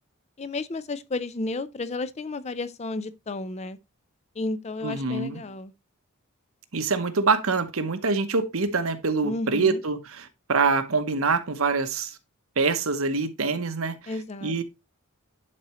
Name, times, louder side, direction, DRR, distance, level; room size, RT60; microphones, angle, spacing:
voice 1, 0.4-3.8 4.4-5.7 9.2-9.8 14.1-14.6, left 2 dB, 30° left, 0.5 m, -32 dB
voice 2, 4.8-5.4 6.7-12.2 12.6-14.0 14.4-14.6, right 4 dB, 75° right, 0.9 m, -25 dB
11.0 x 4.2 x 3.0 m
head